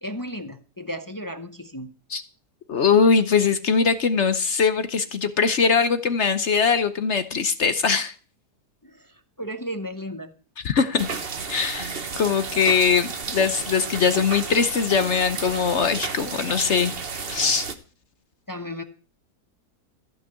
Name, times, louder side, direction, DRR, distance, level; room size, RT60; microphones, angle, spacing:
voice 1, 0.0-1.9 8.8-10.3 18.5-18.8, equal, 25° left, 8 dB, 0.4 m, -34 dB
voice 2, 2.7-8.1 10.6-11.1 11.5-16.9 17.3-17.7, left 5 dB, 55° left, 11 dB, 0.9 m, -21 dB
sound 1, 11.0-17.7, right 5 dB, 40° right, 1.2 m, -32 dB
14.0 x 5.7 x 8.1 m, 0.38 s
omnidirectional pair, 1.7 m